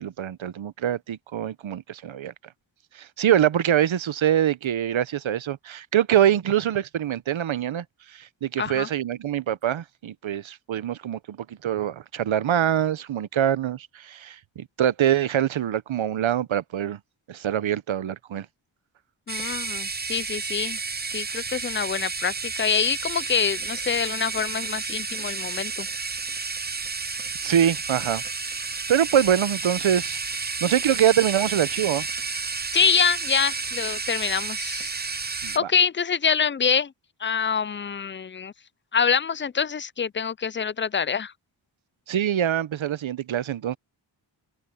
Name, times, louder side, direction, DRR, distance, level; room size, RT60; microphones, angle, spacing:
voice 1, 0.0-2.3 2.9-17.0 17.3-18.5 27.4-28.2 28.9-30.2 30.6-32.1 35.4-35.7 42.1-43.8, right 10 dB, 85° right, 0.8 m, -24 dB
voice 2, 8.6-8.9 19.3-20.8 21.1-25.9 32.7-34.9 35.5-36.9 37.2-38.5 38.9-41.3, left 6 dB, 25° left, 0.4 m, -25 dB
sound 1, 19.3-35.6, right 4 dB, 20° right, 0.5 m, -31 dB
open air
wide cardioid pair, 85°, 46 cm